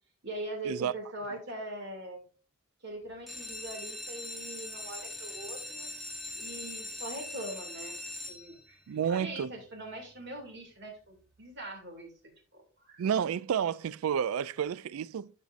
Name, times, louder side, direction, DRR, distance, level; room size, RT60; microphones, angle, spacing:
voice 1, 0.2-2.2 2.8-5.9 6.3-8.0 8.3-12.1 12.5-13.1, right 1 dB, 55° right, 2.6 m, -42 dB
sound 1, 3.1-8.9 9.5-10.0 10.4-10.5 10.7-10.8 11.2-11.4, left 2 dB, ahead, 1.0 m, -41 dB
voice 2, 8.9-9.5 13.0-15.3, right 8 dB, 90° right, 0.3 m, -30 dB
12.0 x 5.2 x 2.5 m
head